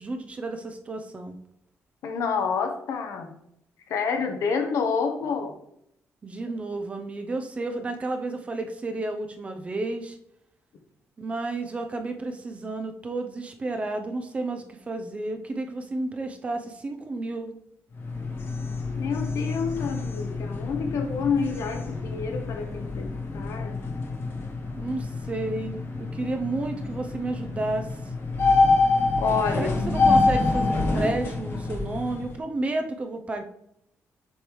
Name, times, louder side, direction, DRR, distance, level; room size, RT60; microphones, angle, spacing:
voice 1, 0.0-1.4 6.2-10.2 11.2-17.6 24.8-27.9 29.5-33.4, right 2 dB, 25° right, 5 dB, 0.6 m, -31 dB
voice 2, 2.0-3.3 3.9-5.5 19.0-23.1 23.3-23.8 29.2-29.8, left 5 dB, 75° left, 5 dB, 1.0 m, -28 dB
sound 1, 17.9-32.3, left 3 dB, 50° left, 1.1 m, -26 dB
7.0 x 5.1 x 3.1 m, 0.75 s
cardioid pair, 155°, 5 cm